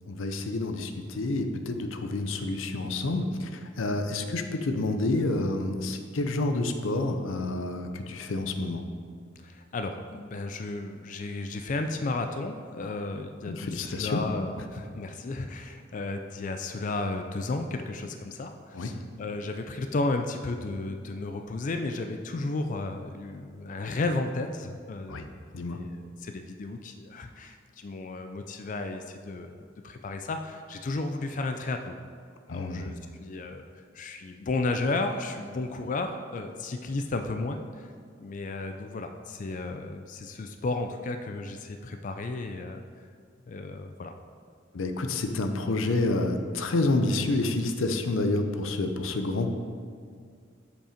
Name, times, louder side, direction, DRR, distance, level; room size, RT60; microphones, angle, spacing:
voice 1, 0.1-8.8 13.5-14.2 18.7-18.9 25.1-25.3 25.5-25.8 32.5-32.9 44.7-49.5, left 2 dB, 90° left, 6 dB, 0.6 m, -29 dB
voice 2, 9.4-25.3 25.7-32.0 32.5-33.6 33.9-37.9 38.2-42.8 43.5-44.1, left 2 dB, 40° left, 6 dB, 0.4 m, -33 dB
7.5 x 5.3 x 5.0 m, 2.1 s
head